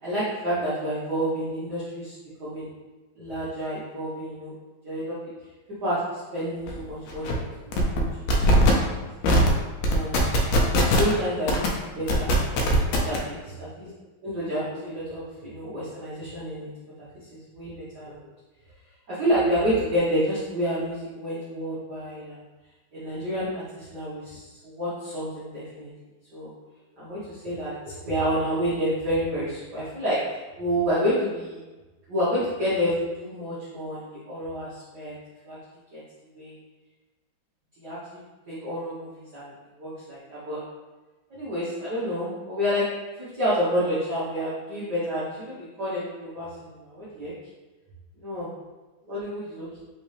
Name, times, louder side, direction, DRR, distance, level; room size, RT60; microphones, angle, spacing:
voice 1, 0.0-2.7 3.2-4.5 4.8-5.1 5.8-9.1 9.9-10.2 10.8-11.6 12.0-12.3 13.0-13.9 14.2-16.7 17.3-18.3 19.1-22.4 22.9-25.9 26.3-26.5 27.0-31.6 32.1-35.1 35.4-35.6 35.9-36.0 36.3-36.5 37.8-39.5 39.8-40.6 41.3-42.8 43.3-47.3 48.2-48.5 49.1-49.8, equal, 90° right, -9 dB, 0.9 m, -29 dB
sound 1, 6.7-6.8 7.1-7.3 7.7-8.0 8.3-8.7 9.2-9.5 9.8-11.1 11.5-11.7 12.1-13.2, equal, 85° left, 2.2 m, -20 dB
5.2 x 3.2 x 3.2 m, 1.2 s
omnidirectional pair, 3.5 m